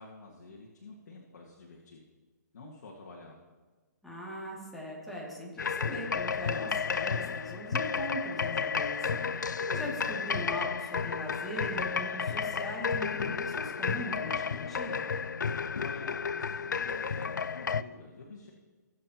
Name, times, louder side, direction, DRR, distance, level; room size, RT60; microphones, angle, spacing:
voice 1, 0.0-2.0 2.5-3.4 15.8-18.5, left 3 dB, 65° left, -3 dB, 1.7 m, -49 dB
voice 2, 4.0-15.1, equal, ahead, -6 dB, 2.4 m, -40 dB
sound 1, 5.6-17.8, left 6 dB, 90° left, 0.4 m, -32 dB
19.0 x 7.7 x 2.9 m, 1.3 s
hypercardioid pair, 140°, 10 cm